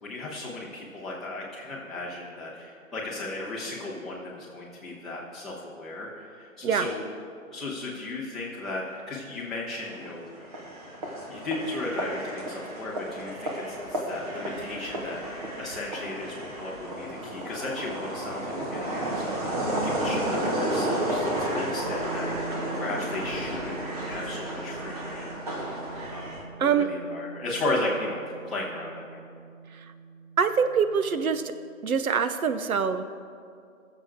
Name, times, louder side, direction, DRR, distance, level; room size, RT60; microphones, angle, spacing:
voice 1, 0.0-7.0 7.5-10.3 11.3-19.5 19.8-25.4 26.1-28.2 28.5-29.2, left 2 dB, ahead, -12 dB, 1.1 m, -35 dB
sound 1, 9.7-26.4, right 1 dB, 30° right, 1.4 m, -32 dB
sound 2, 21.8-31.6, right 4 dB, 50° right, 1.5 m, -43 dB
voice 2, 30.4-31.4 31.8-33.0, right 6 dB, 85° right, 10 dB, 0.9 m, -24 dB
21.5 x 7.4 x 3.7 m, 2.3 s
hypercardioid pair, 170°, 41 cm